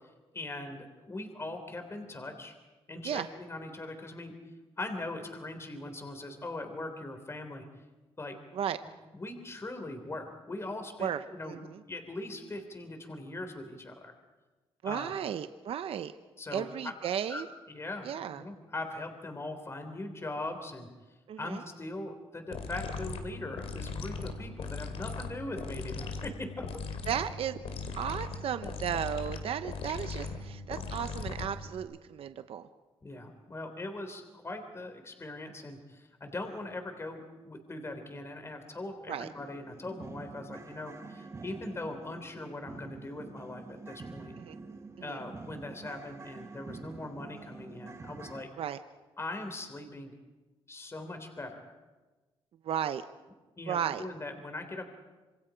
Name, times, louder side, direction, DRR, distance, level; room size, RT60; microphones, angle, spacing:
voice 1, 0.3-2.5 2.9-4.3 4.8-7.6 8.2-8.4 9.1-11.6 11.9-14.1 14.8-15.1 16.4-16.9 17.3-18.1 18.4-20.9 21.4-26.6 33.0-44.3 45.0-48.5 49.2-50.1 50.7-51.7 53.6-54.9, left 2 dB, 25° left, 6 dB, 3.4 m, -40 dB
voice 2, 11.0-11.8 14.8-16.1 16.5-17.5 18.0-18.4 21.3-21.6 27.1-27.6 27.9-32.7 39.1-39.3 44.4-44.6 45.0-45.2 48.6-48.8 52.6-53.0 53.7-54.0, right 9 dB, 70° right, 10 dB, 0.8 m, -34 dB
sound 1, 22.5-31.8, left 4 dB, 90° left, 2.7 m, -39 dB
sound 2, 38.4-38.5 38.9-39.0 39.4-48.4, right 3 dB, 25° right, 1.3 m, -47 dB
26.5 x 26.0 x 5.1 m, 1.2 s
cardioid pair, 110°, 10 cm